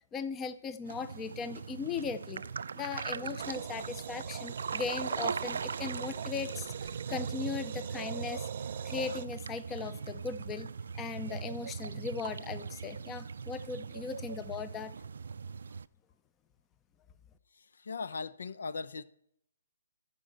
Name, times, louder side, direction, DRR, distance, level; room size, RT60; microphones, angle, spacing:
voice 1, 0.1-2.4 2.8-8.4 8.8-14.9, left 5 dB, 15° left, 0.5 m, -38 dB
sound 1, 0.9-15.9, right 5 dB, 80° right, 0.4 m, -40 dB
sound 2, 3.4-9.2, right 9 dB, 45° right, 0.7 m, -43 dB
voice 2, 17.5-19.0, left 4 dB, 90° left, 0.8 m, -39 dB
13.0 x 5.5 x 7.5 m
hypercardioid pair, 170°, 0 cm